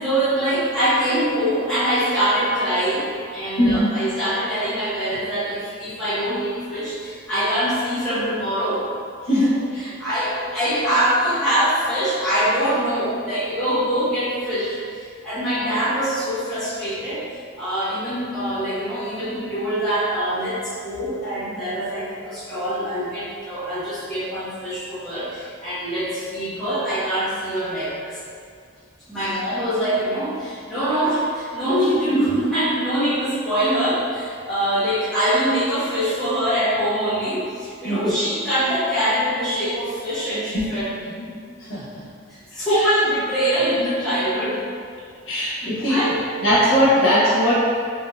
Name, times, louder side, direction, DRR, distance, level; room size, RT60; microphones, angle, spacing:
voice 1, 0.0-8.9 9.4-9.5 9.7-17.2 17.6-28.2 29.1-41.3 42.3-44.6 45.3-45.5 45.8-46.2, right 1 dB, ahead, -14 dB, 0.9 m, -23 dB
voice 2, 3.6-3.9 9.3-9.6 37.8-38.2 40.5-40.6 41.7-41.8 45.3-46.0 46.4-47.5, equal, 80° left, -9 dB, 0.9 m, -19 dB
3.6 x 2.8 x 2.2 m, 2.1 s
head